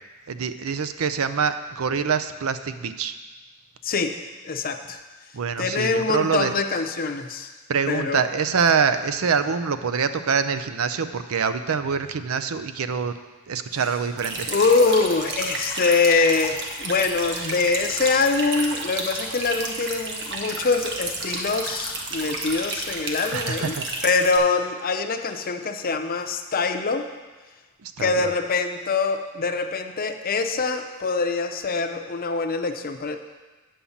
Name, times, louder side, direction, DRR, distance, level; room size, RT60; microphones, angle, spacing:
voice 1, 0.3-3.1 5.3-6.5 7.7-13.1 13.5-14.5 23.3-23.8 27.8-28.3, right 6 dB, 85° right, 10 dB, 0.5 m, -25 dB
voice 2, 3.8-4.2 4.4-5.0 5.6-7.5 7.9-8.2 13.7-13.8 14.5-23.8 24.0-27.1 28.0-33.2, left 4 dB, 45° left, 6 dB, 0.6 m, -24 dB
sound 1, 14.2-24.4, right 2 dB, 55° right, 1.3 m, -31 dB
8.5 x 5.5 x 7.2 m, 1.2 s
head